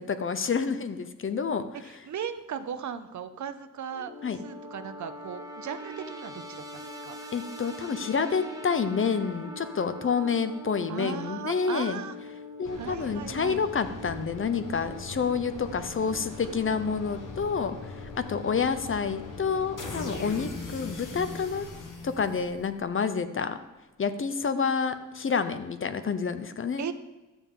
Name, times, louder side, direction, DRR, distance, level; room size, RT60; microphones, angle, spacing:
voice 1, 0.0-1.6 4.2-4.4 7.3-12.0 12.6-21.7 22.0-23.6 24.0-26.9, left 6 dB, 40° left, 10 dB, 0.5 m, -28 dB
voice 2, 1.8-4.1 4.4-7.2 10.9-12.2 12.7-13.6 26.8-26.9, right 8 dB, 65° right, 9 dB, 0.6 m, -37 dB
sound 1, 3.9-21.6, equal, 10° right, 0.8 m, -44 dB
sound 2, 12.6-22.9, left 2 dB, 80° left, 1.2 m, -41 dB
12.0 x 7.1 x 3.6 m, 1.1 s
wide cardioid pair, 175°, 31 cm